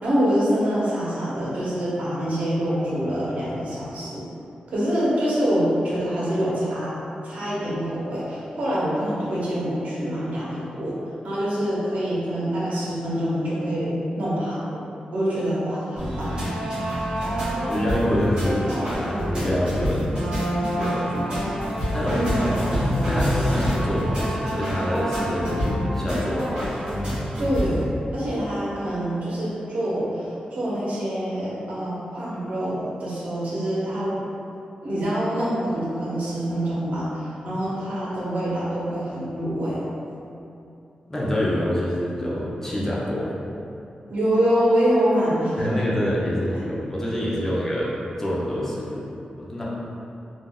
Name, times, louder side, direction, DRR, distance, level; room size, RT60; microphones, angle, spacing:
voice 1, 0.0-4.2 4.7-6.9 7.2-10.9 11.2-14.8 15.1-16.4 22.0-22.6 27.4-27.8 28.1-34.2 34.8-39.8 44.1-45.8 46.5-46.6, equal, 65° right, -8 dB, 0.8 m, -25 dB
sound 1, 16.0-27.8, equal, 35° right, 1.4 m, -26 dB
voice 2, 17.6-20.1 20.8-21.3 21.9-22.2 23.1-26.5 41.1-43.3 45.6-49.1 49.4-49.6, equal, 15° left, -6 dB, 0.5 m, -26 dB
3.6 x 2.4 x 2.2 m, 2.7 s
wide cardioid pair, 140°, 3 cm